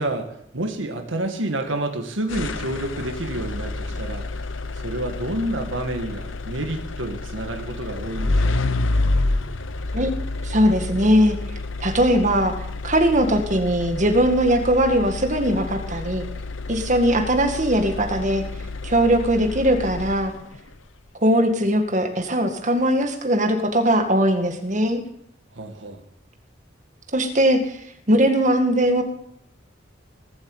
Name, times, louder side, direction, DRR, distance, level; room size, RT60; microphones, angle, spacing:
voice 1, 0.0-4.3 4.7-8.8 25.5-26.0, right 1 dB, 80° right, 4 dB, 2.1 m, -29 dB
sound 1, 2.3-20.6, left 2 dB, 85° left, 0.9 m, -29 dB
voice 2, 10.4-11.4 11.8-12.5 12.8-16.3 16.7-18.4 18.8-20.3 21.2-25.0 27.1-27.8 28.1-29.0, equal, 40° right, 5 dB, 2.0 m, -20 dB
19.0 x 8.1 x 8.0 m, 0.73 s
head